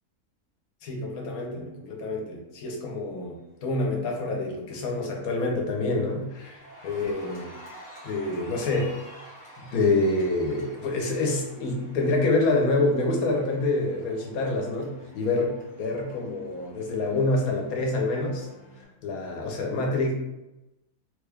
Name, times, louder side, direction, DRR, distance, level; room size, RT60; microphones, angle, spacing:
voice 1, 0.8-7.5 8.0-9.3 9.6-18.5 19.0-20.1, left 2 dB, 80° left, 0 dB, 1.2 m, -27 dB
Cheering, 4.0-4.4 4.7-18.8, left 1 dB, 45° left, 1.1 m, -49 dB
3.4 x 2.3 x 3.4 m, 0.95 s
omnidirectional pair, 1.5 m